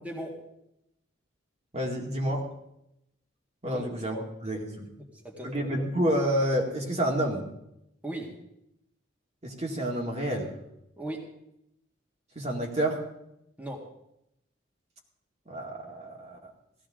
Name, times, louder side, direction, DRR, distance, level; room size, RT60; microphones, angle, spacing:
voice 1, 0.0-0.5 3.7-4.3 5.0-5.7 8.0-8.4 11.0-11.3 13.6-13.9, right 1 dB, 10° right, -2 dB, 2.0 m, -39 dB
voice 2, 1.7-2.5 3.6-4.2 4.4-4.9 5.4-7.4 9.4-10.5 12.4-13.0 15.5-16.5, right 1 dB, 35° right, -1 dB, 2.1 m, -29 dB
16.5 x 15.0 x 3.8 m, 0.82 s
head